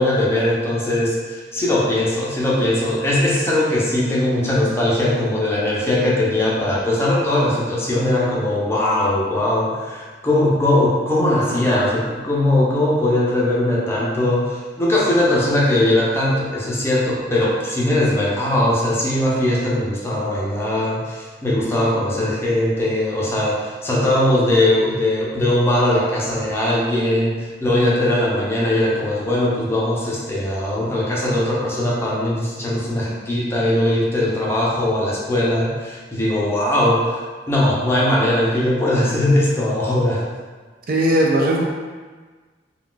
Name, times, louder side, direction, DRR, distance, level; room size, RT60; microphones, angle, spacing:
voice 1, 0.0-37.2 37.5-40.3, left 1 dB, 15° left, -6 dB, 0.6 m, -20 dB
voice 2, 40.9-41.6, right 1 dB, 50° right, -2 dB, 0.4 m, -17 dB
2.4 x 2.3 x 3.7 m, 1.4 s
head